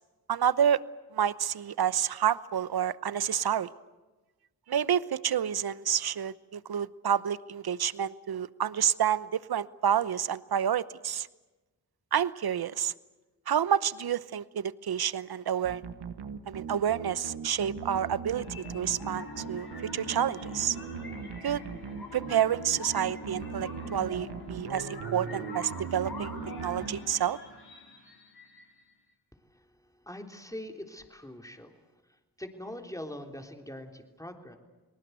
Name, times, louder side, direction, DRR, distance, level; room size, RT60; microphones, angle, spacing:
voice 1, 0.3-0.8 1.1-3.7 4.7-11.3 12.1-12.9 13.5-15.8 16.5-18.4 18.7-19.7 19.9-20.8 21.4-21.6 22.1-27.4, right 9 dB, 65° right, 17 dB, 0.9 m, -29 dB
sound 1, 15.6-27.5, right 6 dB, 90° right, 1.3 m, -40 dB
sound 2, 18.3-28.9, left 3 dB, 65° left, 7.5 m, -44 dB
voice 2, 30.0-31.7 32.4-34.6, left 1 dB, 10° left, 4 dB, 3.5 m, -42 dB
29.5 x 19.5 x 8.1 m, 1.2 s
cardioid pair, 45°, 40 cm